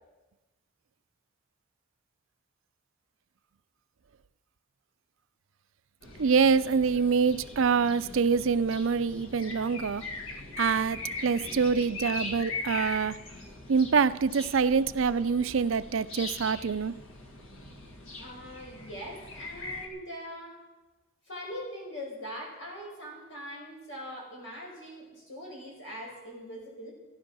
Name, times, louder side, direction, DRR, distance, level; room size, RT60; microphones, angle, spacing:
sound 1, 6.0-19.9, left 3 dB, 90° left, 1.9 m, -41 dB
voice 1, 6.2-10.0 10.6-13.2 13.7-16.9, right 5 dB, 75° right, 15 dB, 0.5 m, -25 dB
voice 2, 11.4-11.8 12.1-12.2 18.2-20.6 21.3-26.9, equal, 70° left, -2 dB, 5.6 m, -42 dB
14.5 x 11.0 x 6.2 m, 1.1 s
head